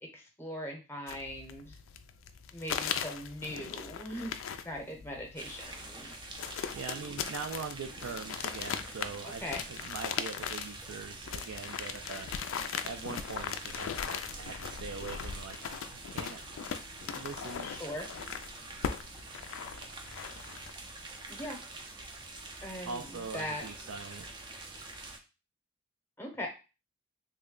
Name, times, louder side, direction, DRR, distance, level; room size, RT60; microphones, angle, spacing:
voice 1, 0.0-1.8 2.5-4.3 4.6-6.3 9.2-9.6 17.6-18.1 21.3-21.6 22.6-23.7 26.2-26.5, left 1 dB, 10° left, 0 dB, 0.7 m, -40 dB
sound 1, 1.1-20.7, left 7 dB, 70° left, 0.3 m, -39 dB
sound 2, 5.4-25.2, right 2 dB, 20° right, 0.4 m, -46 dB
voice 2, 6.7-9.4 9.7-12.3 12.8-16.4 17.1-17.7 22.8-24.3, right 5 dB, 85° right, 4 dB, 0.4 m, -42 dB
3.2 x 2.1 x 3.6 m, 0.30 s
head